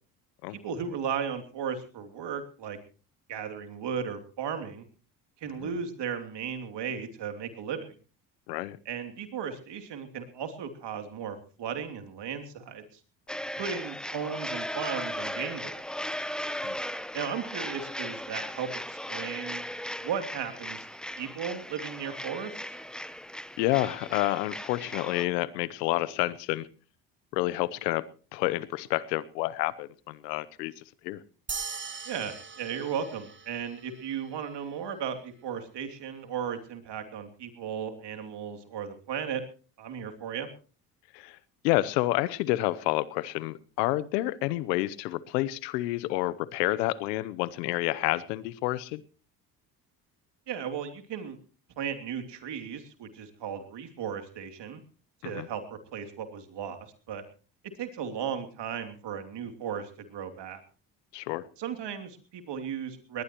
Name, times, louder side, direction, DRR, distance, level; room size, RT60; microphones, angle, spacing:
voice 1, 0.5-2.8 3.3-4.8 5.4-7.9 8.8-13.0 13.6-15.8 17.1-19.6 20.0-20.9 21.2-22.5 32.1-39.4 39.8-40.5 50.5-51.4 51.8-54.8 55.2-56.8 57.1-57.2 57.8-60.6 61.6-63.2, right 7 dB, 60° right, 7 dB, 3.1 m, -35 dB
sound 1, 13.3-25.3, equal, ahead, 0.8 m, -37 dB
voice 2, 23.6-26.7 27.3-28.0 28.3-30.7 31.0-31.2 41.1-41.4 41.6-49.0 55.2-55.5 61.1-61.4, left 17 dB, 85° left, 19 dB, 1.0 m, -29 dB
sound 2, 31.5-34.2, right 5 dB, 25° right, 1.5 m, -40 dB
20.0 x 19.5 x 3.0 m, 0.37 s
hypercardioid pair, 60°, 48 cm